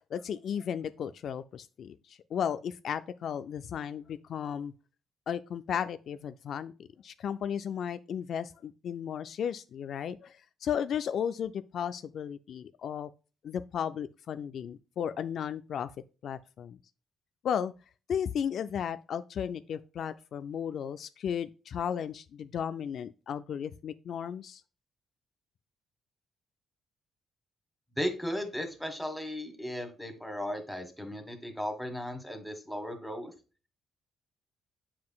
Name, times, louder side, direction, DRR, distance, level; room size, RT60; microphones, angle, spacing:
voice 1, 0.1-4.7 5.3-6.7 7.0-13.1 13.4-15.9 16.2-16.8 17.4-17.7 18.1-24.6, left 8 dB, 65° left, 0.3 m, -34 dB
voice 2, 27.9-33.3, equal, ahead, 1.6 m, -36 dB
7.5 x 5.7 x 2.3 m
cardioid pair, 90°, 0 cm